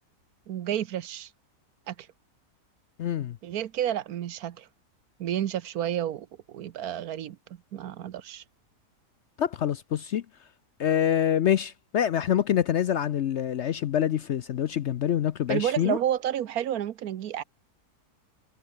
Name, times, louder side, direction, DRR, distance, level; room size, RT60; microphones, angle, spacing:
voice 1, 0.5-1.3 1.9-2.1 3.4-4.7 5.2-7.4 7.7-8.4 15.5-17.4, right 11 dB, 75° right, 1.3 m, -30 dB
voice 2, 3.0-3.4 9.4-10.2 10.8-16.0, left 10 dB, 60° left, 0.8 m, -26 dB
omnidirectional pair, 1.6 m